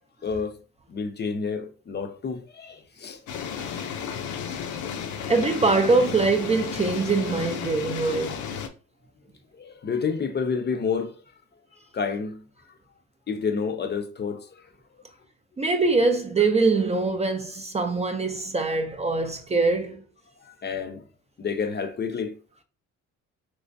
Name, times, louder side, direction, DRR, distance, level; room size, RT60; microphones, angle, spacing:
voice 1, 0.2-0.6 0.9-3.2 9.5-11.2 11.9-12.5 13.3-14.6 20.4-21.0 21.4-22.4, left 5 dB, 35° left, 0.5 m, -29 dB
sound 1, 3.3-8.7, left 7 dB, 75° left, 0.6 m, -33 dB
voice 2, 5.3-8.4 15.6-20.0, right 3 dB, 20° right, 0.4 m, -23 dB
3.4 x 3.0 x 2.6 m
cardioid pair, 90°, 30 cm